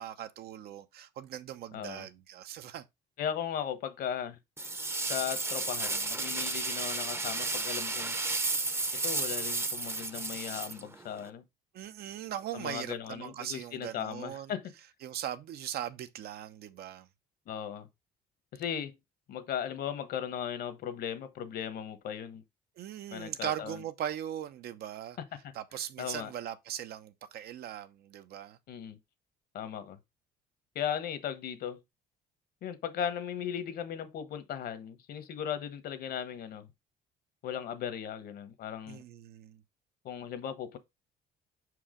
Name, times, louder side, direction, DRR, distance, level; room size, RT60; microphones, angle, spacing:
voice 1, 0.0-2.8 11.7-14.5 15.0-17.1 22.8-25.2 25.5-28.6 38.9-39.6, right 11 dB, 70° right, 0.9 m, -39 dB
voice 2, 1.7-2.1 3.2-4.4 5.1-8.2 8.9-11.4 12.5-14.7 17.5-17.9 18.5-19.0 19.3-22.4 23.1-23.8 25.3-25.5 26.0-26.3 28.7-29.0 29.5-30.0 30.7-31.8 32.6-36.7 37.4-39.0 40.0-40.8, left 9 dB, 65° left, 1.2 m, -37 dB
sound 1, 4.6-11.3, right 3 dB, 15° right, 0.7 m, -33 dB
5.8 x 4.8 x 3.8 m
cardioid pair, 110°, 17 cm